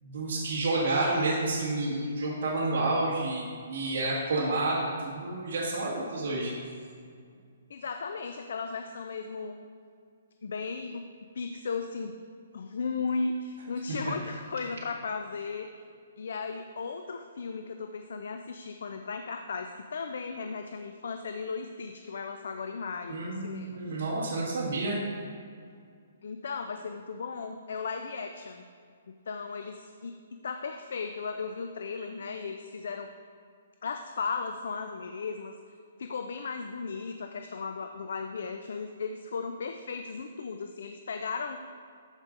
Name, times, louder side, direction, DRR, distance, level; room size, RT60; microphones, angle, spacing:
voice 1, 0.0-6.5 23.1-25.0, right 2 dB, 50° right, -6 dB, 1.7 m, -29 dB
voice 2, 7.7-9.6 10.4-11.1 11.3-12.1 12.5-15.7 16.2-23.7 26.2-28.7 29.3-33.1 33.8-35.6 36.0-41.6, left 4 dB, 65° left, 6 dB, 0.5 m, -36 dB
13.5 x 5.1 x 3.9 m, 2.2 s
hypercardioid pair, 170°, 0 cm